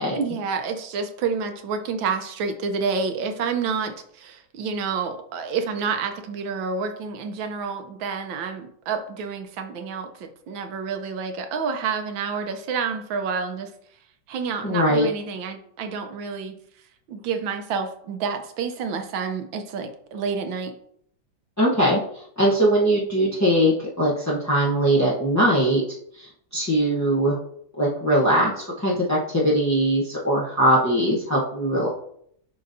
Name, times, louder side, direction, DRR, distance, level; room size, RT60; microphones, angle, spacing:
voice 1, 0.2-13.7 14.3-16.5 17.1-20.7, right 5 dB, 85° right, 6 dB, 1.5 m, -29 dB
voice 2, 14.6-15.1 21.6-22.0 22.4-25.8 26.2-27.4 27.8-31.9, equal, 20° left, -6 dB, 0.4 m, -21 dB
11.0 x 3.8 x 2.6 m, 0.67 s
omnidirectional pair, 2.1 m